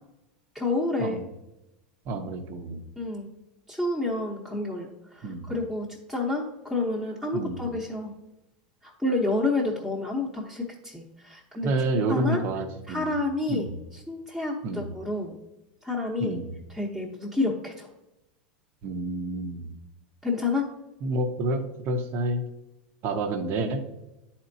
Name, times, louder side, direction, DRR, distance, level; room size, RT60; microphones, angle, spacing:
voice 1, 0.5-1.2 3.0-3.3 3.7-8.1 8.8-11.7 12.1-12.4 12.9-15.4 15.8-16.4 16.7-17.9 20.2-20.7, left 2 dB, ahead, -5 dB, 0.9 m, -29 dB
voice 2, 2.1-2.8 5.2-5.5 7.3-7.6 11.6-13.1 13.5-13.7 14.6-14.8 16.2-16.5 18.8-19.7 21.0-22.4 23.0-23.8, right 2 dB, 45° right, 7 dB, 0.8 m, -29 dB
10.0 x 4.3 x 2.7 m, 0.96 s
supercardioid pair, 115°, 5 cm